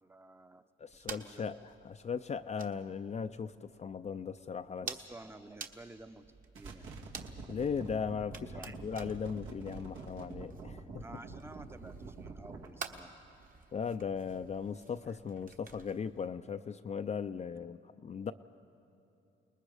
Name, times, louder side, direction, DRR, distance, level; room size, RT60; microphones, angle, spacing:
voice 1, 0.0-0.6 0.9-1.4 4.8-6.2 6.5-6.9 8.5-8.7 10.9-13.1 15.1-15.2, right 2 dB, 10° right, 9 dB, 0.8 m, -52 dB
voice 2, 0.8-4.9 7.5-11.0 13.7-18.3, left 6 dB, 35° left, 9 dB, 0.5 m, -38 dB
sound 1, 0.9-16.3, right 5 dB, 45° right, 1.4 m, -51 dB
sound 2, 6.5-12.7, right 4 dB, 85° right, 2.2 m, -46 dB
29.0 x 20.0 x 5.0 m, 2.9 s
cardioid pair, 90°, 20 cm